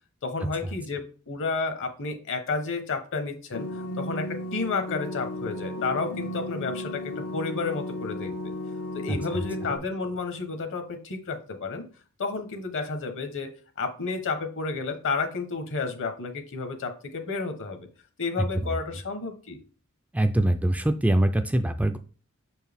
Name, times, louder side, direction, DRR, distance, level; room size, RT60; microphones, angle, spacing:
voice 1, 0.2-8.5 8.9-11.9 12.2-13.5 13.8-17.9 18.2-19.6, left 4 dB, 60° left, 6 dB, 1.1 m, -31 dB
sound 1, 3.5-9.8, left 1 dB, 85° left, 0.9 m, -34 dB
voice 2, 20.1-22.0, right 1 dB, 5° right, 8 dB, 0.3 m, -23 dB
6.4 x 4.5 x 3.5 m, 0.39 s
head